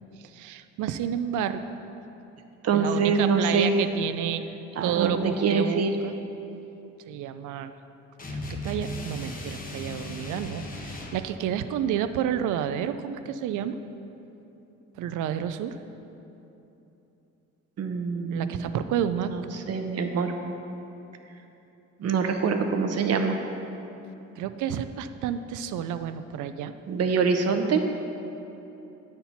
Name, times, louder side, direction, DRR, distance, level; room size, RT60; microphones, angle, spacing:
voice 1, 0.2-1.6 2.7-4.4 4.8-6.1 7.1-7.7 8.3-13.8 15.0-15.8 18.3-19.3 24.4-26.7, right 9 dB, 80° right, 11 dB, 0.5 m, -30 dB
voice 2, 2.6-3.7 4.8-6.0 17.8-18.7 19.3-19.4 19.7-20.3 22.0-23.4 26.9-27.8, right 5 dB, 55° right, 5 dB, 0.8 m, -25 dB
sound 1, 8.2-11.3, left 1 dB, 30° left, 0.9 m, -36 dB
9.1 x 4.4 x 5.6 m, 3.0 s
cardioid pair, 90°, 30 cm